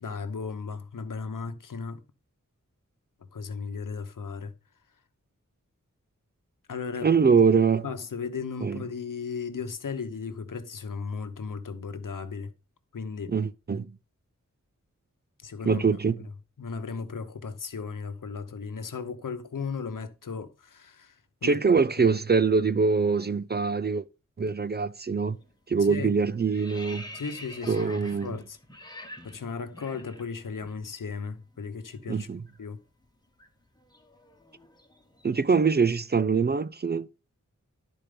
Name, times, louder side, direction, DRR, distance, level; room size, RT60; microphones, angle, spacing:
voice 1, 0.0-2.0 3.3-4.5 6.7-7.1 7.8-12.5 12.9-13.3 15.4-15.8 16.6-21.2 21.4-21.8 25.8-26.1 27.1-28.6 29.2-32.3 32.6-32.8, left 5 dB, 85° left, 0.9 m, -36 dB
voice 2, 7.0-7.8 8.6-8.8 13.3-13.9 15.7-16.2 21.4-24.0 24.4-25.4 25.7-27.1 27.7-28.4 32.1-32.4 35.2-37.1, right 5 dB, 35° right, 0.4 m, -23 dB
sound 1, 25.2-25.5 25.8-30.8 31.0-31.2 31.5-35.6, left 1 dB, 15° left, 1.6 m, -47 dB
11.5 x 4.5 x 5.1 m
wide cardioid pair, 85°, 31 cm